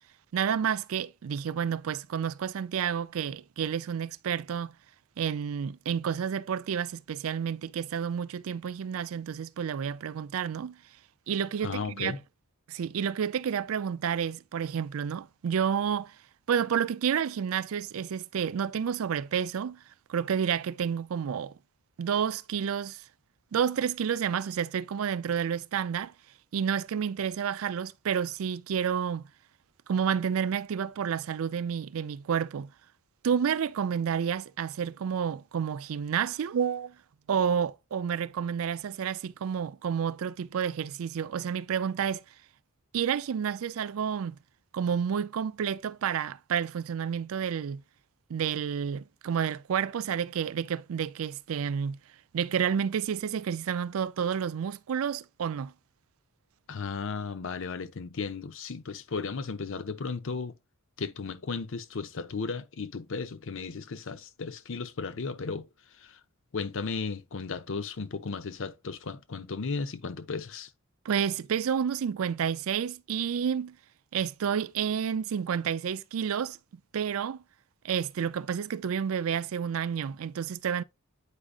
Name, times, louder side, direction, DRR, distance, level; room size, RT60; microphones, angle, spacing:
voice 1, 0.3-4.7 5.2-10.8 11.3-12.2 12.7-16.2 16.5-19.8 20.1-21.5 22.0-23.0 23.5-26.1 26.5-29.2 29.9-32.7 33.2-36.9 37.3-42.2 42.9-44.4 44.7-47.8 48.3-52.0 52.3-55.7 71.0-73.8 74.1-76.6 76.9-77.4 77.8-80.8, right 7 dB, 70° right, 0.4 m, -30 dB
voice 2, 11.6-12.2 56.7-60.5 61.0-65.7 66.0-66.2 66.5-70.7, left 4 dB, 65° left, 0.7 m, -35 dB
8.3 x 5.0 x 2.4 m
head